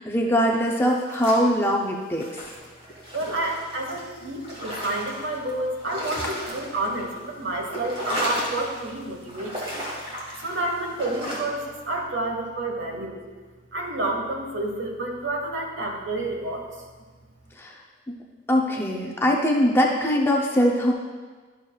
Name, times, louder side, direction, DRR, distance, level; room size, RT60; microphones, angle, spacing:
voice 1, 0.0-2.4 17.6-17.7 18.5-20.9, equal, 10° left, -1 dB, 0.6 m, -22 dB
sound 1, 0.9-1.8 2.1-5.5 5.8-7.2 7.5-8.9 9.3-11.4, equal, 30° right, 1.6 m, -34 dB
voice 2, 3.1-9.8 10.4-13.2 13.7-16.6, right 2 dB, 75° right, 1 dB, 1.3 m, -29 dB
11.5 x 6.5 x 2.3 m, 1.4 s
head